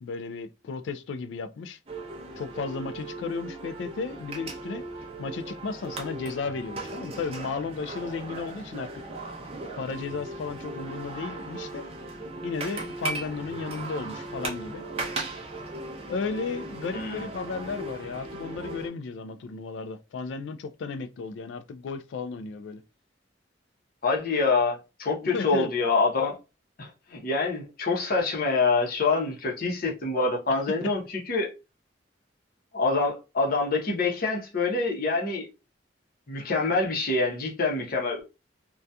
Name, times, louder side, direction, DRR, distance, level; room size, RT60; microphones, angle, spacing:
voice 1, 0.0-1.8 2.4-4.9 5.2-8.9 9.8-11.9 12.4-14.9 16.1-22.8 25.2-25.7, left 4 dB, 75° left, 0.3 m, -34 dB
sound 1, 1.9-18.9, right 2 dB, 35° right, 0.5 m, -37 dB
voice 2, 24.0-26.4 26.8-31.5 32.7-35.5 36.3-38.2, left 3 dB, 55° left, 0.8 m, -26 dB
2.7 x 2.3 x 2.2 m
head